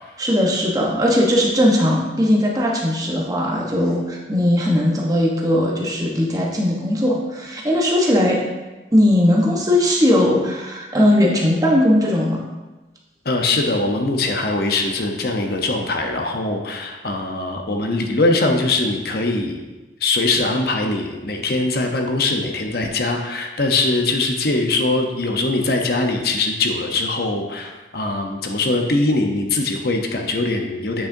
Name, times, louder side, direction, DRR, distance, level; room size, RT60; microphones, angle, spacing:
voice 1, 0.2-8.4 8.9-12.4, left 1 dB, 20° right, -2 dB, 1.0 m, -18 dB
voice 2, 13.2-19.7 20.0-31.1, left 2 dB, 55° left, 3 dB, 0.8 m, -22 dB
8.7 x 6.2 x 2.7 m, 1.1 s
head